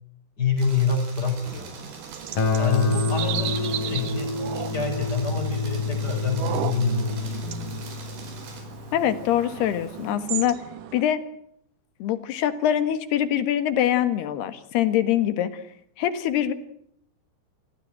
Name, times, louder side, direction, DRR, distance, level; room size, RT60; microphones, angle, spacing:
voice 1, 0.4-1.8 2.6-7.7, left 4 dB, 25° left, 6 dB, 5.1 m, -27 dB
sound 1, 0.6-8.6, right 4 dB, 85° right, 7.2 m, -44 dB
sound 2, 1.4-11.0, right 10 dB, 60° right, 2.5 m, -35 dB
Guitar, 2.4-9.1, left 5 dB, 55° left, 4.9 m, -28 dB
voice 2, 8.9-10.6 10.9-11.2 12.0-15.6 16.0-16.5, left 11 dB, 75° left, 12 dB, 3.5 m, -24 dB
27.5 x 16.5 x 8.9 m, 0.70 s
omnidirectional pair, 4.8 m